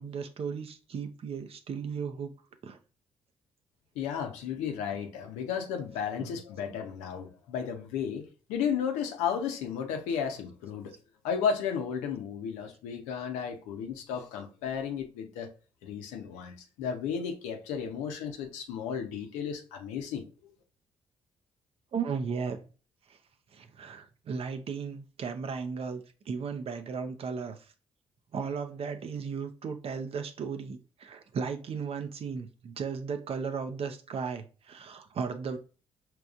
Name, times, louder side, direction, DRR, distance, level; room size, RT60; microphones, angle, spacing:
voice 1, 0.0-2.3 2.6-2.8 6.2-6.3 21.9-22.6 23.1-23.2 23.5-27.6 28.3-35.6, right 6 dB, 55° right, 0.7 m, -35 dB
voice 2, 4.0-10.9 11.2-15.5 15.8-20.5, left 7 dB, 85° left, 0.7 m, -33 dB
5.0 x 3.0 x 2.4 m
hypercardioid pair, 55°, 12 cm